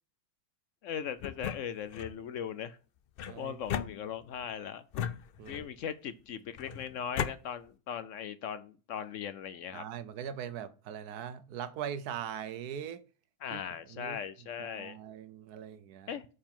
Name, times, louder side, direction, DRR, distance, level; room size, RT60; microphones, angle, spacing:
voice 1, 0.8-2.8 3.3-4.8 5.5-9.9 13.4-15.0 16.1-16.3, left 8 dB, 65° left, 0.9 m, -39 dB
sound 1, 1.2-2.2 3.2-4.4 4.9-5.8 6.6-7.4, left 9 dB, 85° left, 0.5 m, -37 dB
voice 2, 3.3-3.6 5.4-5.7 9.7-13.0 13.5-14.2 14.6-16.2, right 9 dB, 90° right, 1.3 m, -41 dB
9.0 x 4.9 x 3.7 m
omnidirectional pair, 1.6 m